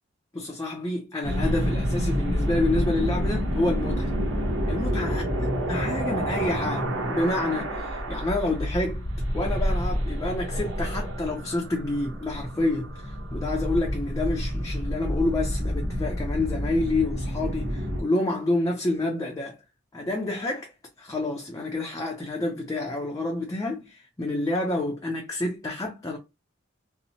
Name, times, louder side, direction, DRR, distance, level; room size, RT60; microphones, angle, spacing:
voice 1, 0.3-4.1 4.7-9.0 9.3-19.6 19.9-26.2, left 2 dB, 15° left, 0.4 m, -28 dB
sound 1, 1.2-18.0, equal, 80° right, 0.9 m, -28 dB
2.8 x 2.0 x 2.6 m
head